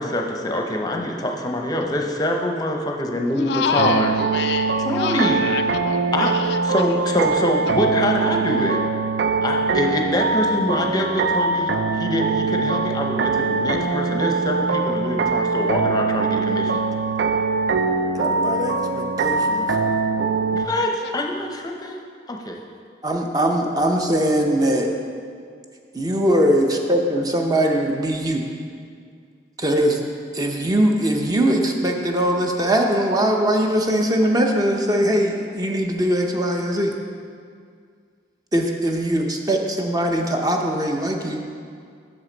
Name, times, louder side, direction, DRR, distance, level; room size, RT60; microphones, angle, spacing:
voice 1, 0.0-4.1 4.8-5.4 6.1-6.3 6.6-8.8 9.4-16.8 20.5-22.0 22.3-22.6, left 1 dB, 20° left, 2 dB, 0.6 m, -24 dB
voice 2, 3.4-6.6 6.9-7.0 7.8-7.9 21.0-21.1, left 6 dB, 65° left, 9 dB, 0.3 m, -28 dB
sound 1, 3.8-20.7, right 4 dB, 75° right, 0.3 m, -22 dB
voice 3, 18.1-19.8 23.0-24.9 25.9-28.4 29.6-30.0 30.3-36.9 38.5-41.4, right 1 dB, 20° right, 2 dB, 0.6 m, -21 dB
7.7 x 6.4 x 3.9 m, 2.2 s
head